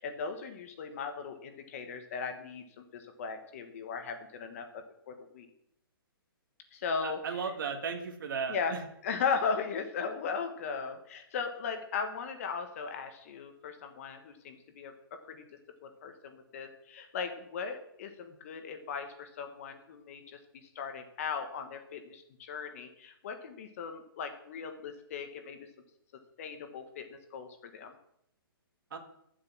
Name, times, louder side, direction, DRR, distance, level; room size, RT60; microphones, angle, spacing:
voice 1, 0.0-5.5 6.7-7.5 8.5-8.7 9.0-14.9 15.3-15.4 15.8-20.4 20.7-25.7 26.4-27.9, left 5 dB, 35° left, 6 dB, 1.3 m, -37 dB
voice 2, 7.0-8.8 28.9-29.0, right 6 dB, 60° right, 2 dB, 1.8 m, -35 dB
11.5 x 7.6 x 6.0 m, 0.75 s
hypercardioid pair, 165°, 12 cm